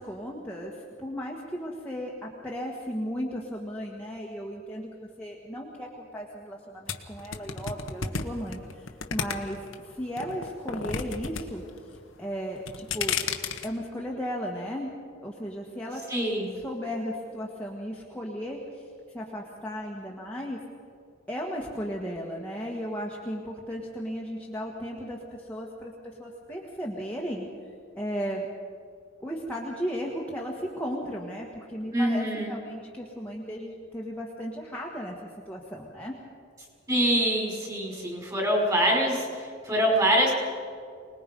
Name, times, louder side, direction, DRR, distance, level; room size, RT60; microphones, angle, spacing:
voice 1, 0.0-8.8 9.1-11.6 12.2-13.2 13.6-14.9 15.2-16.1 16.5-18.6 19.1-20.6 21.3-27.5 28.0-28.5 29.2-35.2 35.5-36.1, equal, 5° left, -3 dB, 1.7 m, -35 dB
sound 1, 6.9-9.7 10.2-11.4 11.7-12.2 12.6-13.7, left 6 dB, 85° left, 1.3 m, -31 dB
voice 2, 16.1-16.5 31.9-32.5 36.9-40.3, right 1 dB, 20° right, -1 dB, 5.5 m, -25 dB
25.0 x 20.0 x 5.4 m, 2.3 s
head